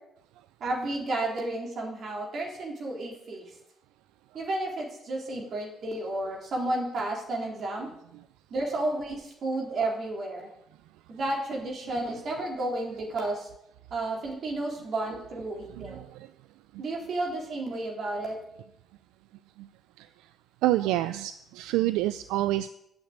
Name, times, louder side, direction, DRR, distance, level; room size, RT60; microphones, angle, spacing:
voice 1, 0.6-3.4 4.3-7.9 8.5-10.5 11.1-13.5 13.9-16.0 16.8-18.4, right 2 dB, 60° right, 0 dB, 3.9 m, -32 dB
voice 2, 15.8-16.3 19.6-19.7 20.0-20.1 20.6-22.7, right 15 dB, 85° right, 14 dB, 0.3 m, -27 dB
8.7 x 7.2 x 8.7 m, 0.84 s
supercardioid pair, 60°, 0 cm